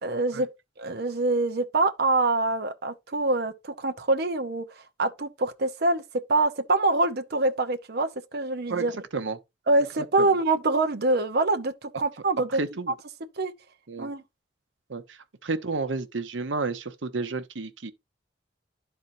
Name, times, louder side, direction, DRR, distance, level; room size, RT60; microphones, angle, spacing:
voice 1, 0.0-0.5 0.8-6.0 6.3-9.0 9.7-12.5 13.4-13.5 14.0-14.2, right 2 dB, 60° right, 0.8 m, -25 dB
voice 2, 12.6-12.9 13.9-14.1 14.9-17.9, right 3 dB, 90° right, 0.9 m, -31 dB
12.0 x 4.4 x 2.6 m
head